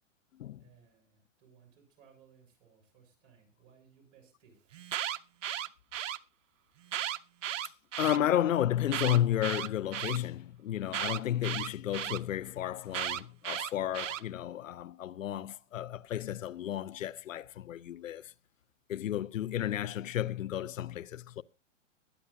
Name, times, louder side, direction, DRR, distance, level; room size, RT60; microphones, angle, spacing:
voice 1, 0.6-4.6, right 7 dB, 45° right, 7.3 m, -62 dB
Alarm, 4.7-6.2 6.8-8.2 8.8-10.2 10.9-12.2 12.9-14.2, right 11 dB, 75° right, 0.9 m, -35 dB
voice 2, 8.0-18.3 18.9-21.4, left 11 dB, 90° left, 0.7 m, -32 dB
22.0 x 10.0 x 2.7 m
hypercardioid pair, 150°, 38 cm